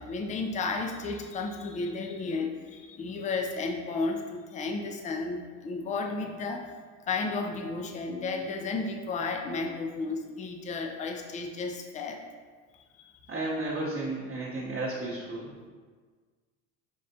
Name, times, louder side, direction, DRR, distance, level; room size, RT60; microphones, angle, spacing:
voice 1, 0.0-6.7 7.1-12.2 13.0-13.1, left 3 dB, 20° left, 3 dB, 0.5 m, -33 dB
voice 2, 13.3-15.7, right 2 dB, 30° right, -6 dB, 0.9 m, -33 dB
5.0 x 3.2 x 2.7 m, 1.5 s
hypercardioid pair, 75°, 40 cm